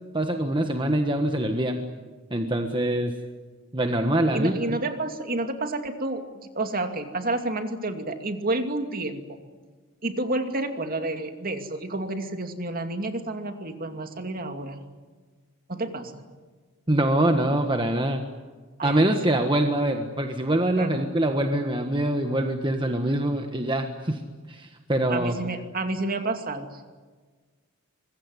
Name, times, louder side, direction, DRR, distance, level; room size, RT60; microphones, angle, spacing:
voice 1, 0.1-1.8 2.3-3.1 3.7-4.8 16.9-18.2 18.8-24.2 24.5-25.5, right 1 dB, 20° right, 5 dB, 1.4 m, -24 dB
voice 2, 4.3-6.2 6.5-9.4 10.0-14.8 15.7-16.3 18.8-19.2 20.8-21.1 25.1-26.9, right 2 dB, 40° right, 6 dB, 2.5 m, -30 dB
25.5 x 22.0 x 9.7 m, 1.4 s
head